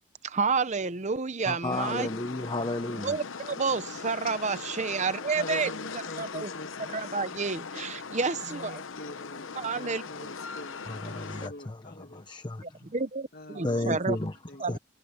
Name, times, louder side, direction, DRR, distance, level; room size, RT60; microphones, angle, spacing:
voice 1, 0.2-2.1 3.0-5.7 6.2-6.5 6.9-8.8 9.6-10.3 12.9-14.2 14.6-14.8, right 4 dB, 35° right, 0.7 m, -30 dB
voice 2, 1.5-3.2 10.9-12.8 13.6-14.4 14.7-14.8, left 2 dB, 20° left, 0.8 m, -32 dB
sound 1, 1.7-11.5, left 5 dB, 65° left, 0.9 m, -40 dB
voice 3, 5.3-7.2 8.4-10.8 11.2-12.2 13.3-14.1 14.5-14.8, left 1 dB, 45° left, 1.9 m, -44 dB
head